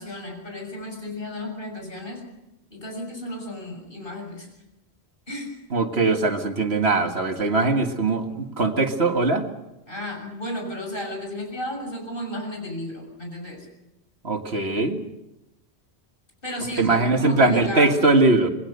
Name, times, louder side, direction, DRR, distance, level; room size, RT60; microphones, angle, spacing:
voice 1, 0.0-2.2 2.7-4.5 5.3-5.6 9.9-13.7 16.4-18.1, left 1 dB, 55° left, 2 dB, 7.0 m, -33 dB
voice 2, 5.7-9.5 14.2-15.0 16.8-18.5, right 3 dB, 70° right, 4 dB, 2.2 m, -21 dB
27.0 x 21.0 x 6.8 m, 0.95 s
omnidirectional pair, 1.1 m